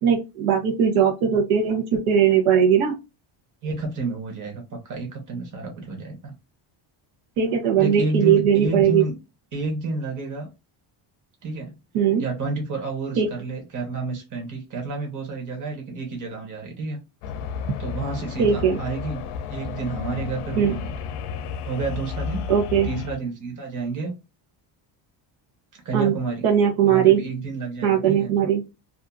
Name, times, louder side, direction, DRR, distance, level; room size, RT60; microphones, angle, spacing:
voice 1, 0.0-2.9 7.4-9.0 11.9-12.2 13.2-13.3 18.4-18.8 20.6-20.8 22.5-22.9 25.9-26.1 26.4-27.2 27.8-28.6, right 8 dB, 80° right, 1 dB, 0.9 m, -19 dB
voice 2, 3.6-6.3 7.8-9.1 9.5-10.5 11.4-11.8 12.2-17.0 17.8-19.2 19.5-20.9 21.6-22.5 22.8-24.1 25.7-26.4 26.9-28.3, right 3 dB, 40° right, 1 dB, 1.1 m, -30 dB
sound 1, 17.2-23.2, left 6 dB, 80° left, 0.6 m, -32 dB
2.7 x 2.4 x 2.4 m, 0.26 s
cardioid pair, 155°, 50 cm